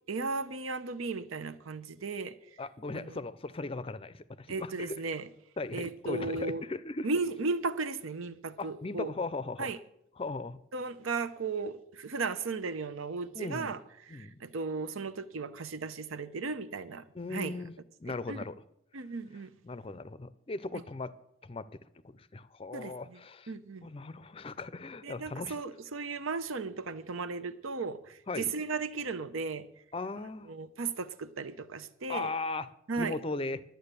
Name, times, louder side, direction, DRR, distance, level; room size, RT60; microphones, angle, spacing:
voice 1, 0.1-2.4 2.9-3.2 4.5-5.3 5.7-6.6 7.0-9.1 9.6-9.8 10.7-13.8 14.1-17.0 17.3-17.6 18.1-18.4 18.9-19.5 22.7-22.9 23.5-23.9 25.0-29.6 30.5-32.3 32.9-33.2, right 4 dB, 85° right, 0.7 m, -35 dB
voice 2, 2.6-5.0 5.6-7.1 8.6-9.8 10.2-10.6 13.3-13.8 14.1-14.4 17.1-17.7 18.0-18.5 19.6-21.1 21.4-21.7 22.0-23.5 23.8-25.7 28.3-28.5 29.9-30.5 32.1-32.7 33.0-33.6, left 3 dB, 30° left, 0.5 m, -38 dB
11.5 x 9.2 x 6.7 m
head